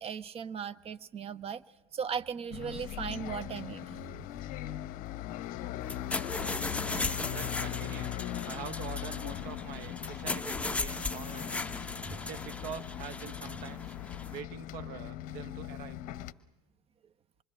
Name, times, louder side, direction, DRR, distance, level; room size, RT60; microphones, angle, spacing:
voice 1, 0.0-1.6 1.9-4.5, right 7 dB, 30° right, 16 dB, 0.9 m, -38 dB
Bus, 2.5-16.3, left 13 dB, 45° left, 0.9 m, -40 dB
sound 1, 5.8-14.4, left 3 dB, 5° left, 0.8 m, -37 dB
voice 2, 7.3-8.1 8.5-11.5 12.1-14.0 14.3-16.0, right 9 dB, 50° right, 12 dB, 1.3 m, -45 dB
25.5 x 23.5 x 7.6 m, 1.1 s
figure-of-eight pair, 80°, 20 cm